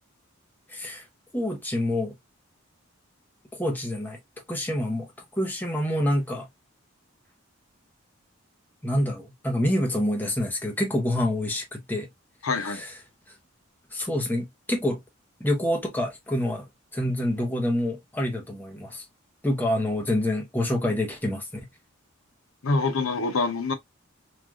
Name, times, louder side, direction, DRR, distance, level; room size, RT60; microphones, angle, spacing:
voice 1, 0.7-1.0 1.3-2.1 3.5-4.2 4.5-5.1 5.3-6.5 8.8-12.1 12.6-12.9 13.9-15.0 15.4-16.7 16.9-19.0 19.4-21.6, left 1 dB, 10° left, 0.7 m, -27 dB
voice 2, 12.4-12.8 22.6-23.7, left 3 dB, 85° left, 0.7 m, -25 dB
3.2 x 2.3 x 2.4 m
head